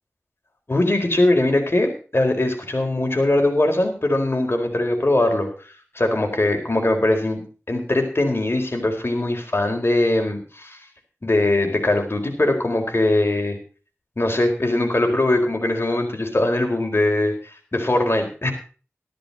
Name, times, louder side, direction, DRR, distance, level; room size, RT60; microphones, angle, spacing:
voice 1, 0.7-10.8 11.2-13.6 14.2-17.3 17.7-18.5, left 2 dB, 50° left, 4 dB, 4.2 m, -21 dB
13.5 x 13.0 x 4.2 m, 0.37 s
wide cardioid pair, 50°, 5 cm